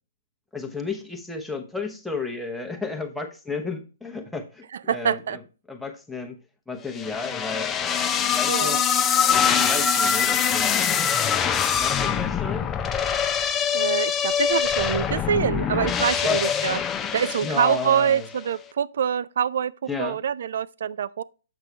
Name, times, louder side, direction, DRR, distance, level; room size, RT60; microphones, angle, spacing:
voice 1, 0.5-5.4 5.7-6.4 6.7-7.8 8.2-8.9 9.5-10.9 11.8-12.7 16.2-16.5 17.4-18.3 19.9-20.2, left 4 dB, ahead, 1.0 m, -32 dB
voice 2, 4.7-5.4 8.5-8.8 13.7-16.8 17.1-21.2, right 8 dB, 65° right, 0.4 m, -25 dB
sound 1, 7.0-18.2, left 7 dB, 15° left, 0.6 m, -24 dB
8.1 x 6.0 x 3.2 m
hypercardioid pair, 135°, 0 cm